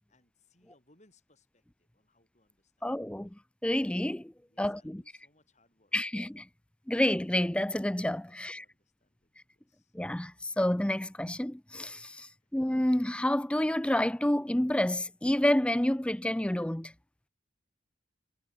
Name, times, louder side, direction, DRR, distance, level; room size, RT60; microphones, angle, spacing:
voice 1, 0.1-3.1 4.5-6.0 8.3-10.0 12.2-12.5, left 2 dB, 35° left, 6.9 m, -68 dB
voice 2, 2.8-4.3 4.6-5.0 5.9-6.5 6.9-8.6 9.9-16.9, left 1 dB, 5° left, 0.4 m, -29 dB
head